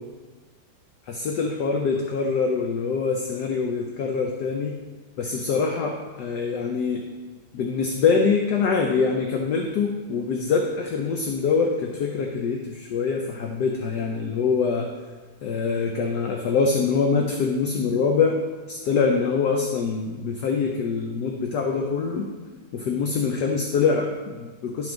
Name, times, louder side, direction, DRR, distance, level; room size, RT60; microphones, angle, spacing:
voice 1, 1.1-4.7 5.2-7.0 7.5-14.9 15.4-18.4 18.7-22.3 22.7-24.9, left 5 dB, 65° left, 2 dB, 1.2 m, -24 dB
11.0 x 5.8 x 3.9 m, 1.4 s
omnidirectional pair, 2.2 m